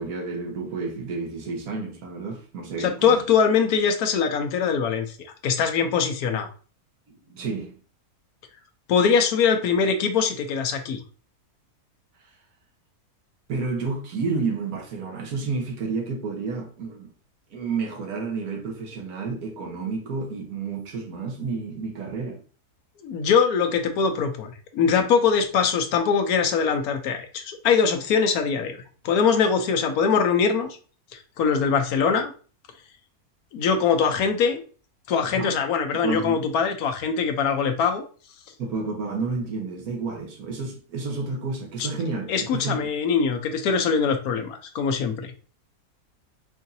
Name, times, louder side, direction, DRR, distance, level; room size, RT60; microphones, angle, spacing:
voice 1, 0.0-3.2 7.3-7.7 13.5-17.1 17.5-22.4 35.3-35.5 36.0-36.4 38.6-42.8, right 4 dB, 75° right, 1.4 m, -30 dB
voice 2, 2.8-5.2 5.4-6.5 8.9-11.0 23.0-28.8 29.0-30.7 31.1-32.3 33.5-34.6 35.1-38.0 41.8-41.9 42.3-45.3, left 6 dB, 75° left, 1.1 m, -22 dB
4.9 x 2.7 x 2.6 m
omnidirectional pair, 1.6 m